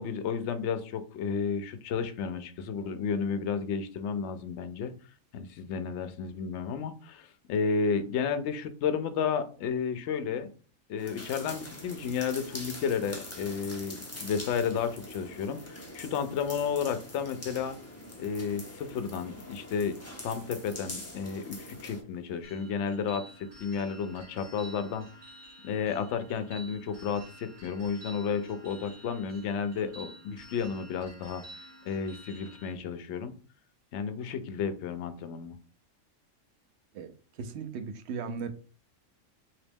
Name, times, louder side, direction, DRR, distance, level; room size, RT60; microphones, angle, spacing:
voice 1, 0.0-4.9 5.3-10.5 10.9-17.8 18.2-20.0 20.2-25.1 25.6-33.3 33.9-35.6, left 6 dB, 70° left, 10 dB, 0.8 m, -32 dB
sound 1, 11.0-22.0, left 1 dB, 20° left, 0.4 m, -44 dB
sound 2, 22.4-32.7, right 1 dB, 40° right, 1.0 m, -50 dB
voice 2, 36.9-38.5, right 5 dB, 65° right, 7 dB, 0.8 m, -37 dB
3.0 x 2.8 x 3.4 m, 0.38 s
omnidirectional pair, 1.3 m